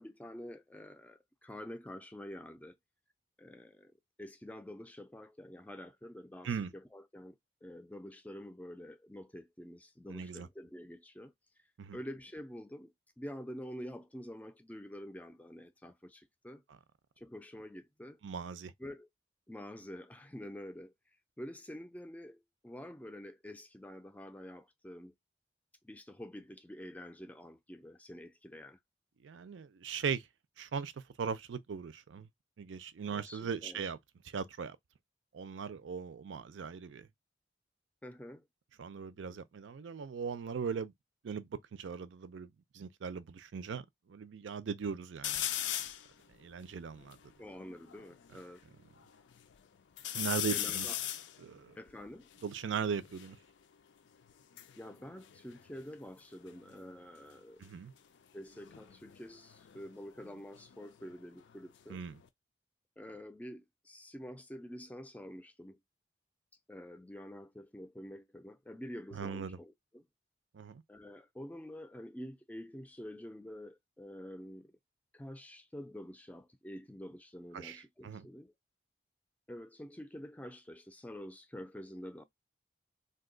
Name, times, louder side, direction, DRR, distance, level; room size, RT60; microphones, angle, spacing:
voice 1, 0.0-2.8 3.4-3.9 4.2-11.3 11.9-16.6 17.2-18.2 18.8-19.1 19.5-20.9 21.4-25.1 25.8-28.8 33.1-33.8 38.0-38.5 47.4-48.6 50.5-51.0 51.8-52.3 54.8-57.6 58.3-62.0 63.0-65.8 66.7-70.1 70.9-74.7 75.1-78.5 79.5-82.2, equal, 10° left, 0.3 m, -47 dB
voice 2, 10.1-10.5 11.8-12.0 18.2-18.7 29.2-30.2 30.6-30.9 31.2-32.3 32.6-34.0 34.3-34.8 35.3-37.1 38.8-40.9 41.2-45.5 46.4-47.2 50.1-50.9 51.4-51.8 52.4-53.4 57.6-57.9 61.9-62.2 69.1-69.6 70.5-70.8 77.5-78.3, right 6 dB, 90° right, 0.4 m, -39 dB
sound 1, 45.2-46.1 46.6-46.7 46.9-48.5 49.0-49.6 50.0-53.3 54.3-56.2 56.5-56.9 58.5-61.1 61.5-62.3, left 11 dB, 80° left, 0.4 m, -40 dB
2.7 x 2.3 x 3.7 m
head